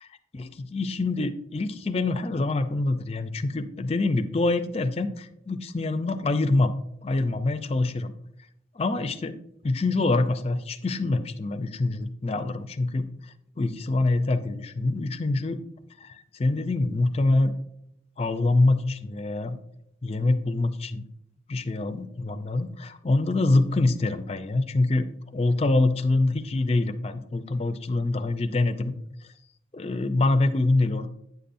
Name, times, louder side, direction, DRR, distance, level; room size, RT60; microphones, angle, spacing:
voice 1, 0.3-8.1 8.8-9.4 9.6-13.1 13.6-15.6 16.0-17.5 18.2-19.6 20.0-21.1 21.5-28.9 29.7-31.1, left 2 dB, 30° left, 9 dB, 0.4 m, -25 dB
9.3 x 6.8 x 2.6 m, 0.76 s
head